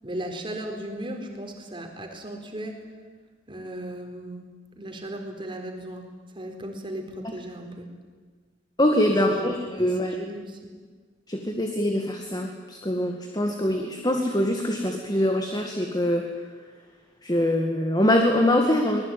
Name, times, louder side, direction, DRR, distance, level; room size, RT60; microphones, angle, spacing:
voice 1, 0.0-2.9 3.5-4.4 4.7-6.1 6.3-7.9 9.1-10.7, right 1 dB, 30° right, 3 dB, 4.3 m, -36 dB
voice 2, 8.8-10.2 11.3-16.2 17.2-19.0, left 1 dB, 25° left, 3 dB, 2.1 m, -23 dB
24.5 x 20.5 x 9.3 m, 1.5 s
head